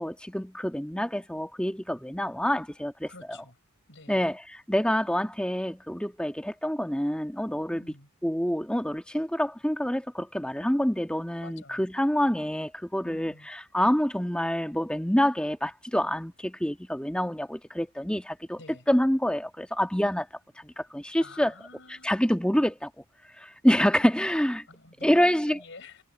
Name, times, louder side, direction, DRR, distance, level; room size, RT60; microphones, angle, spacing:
voice 1, 0.0-3.4 4.1-7.8 8.2-18.6 18.9-20.3 20.6-21.5 22.0-23.0 23.4-24.7 25.0-25.6, equal, 5° left, 1.6 m, -27 dB
voice 2, 3.1-3.6 3.9-4.3 7.7-8.1 11.4-11.9 13.0-13.5 18.6-18.9 21.2-22.2 24.7-26.0, left 3 dB, 60° left, 6.6 m, -48 dB
head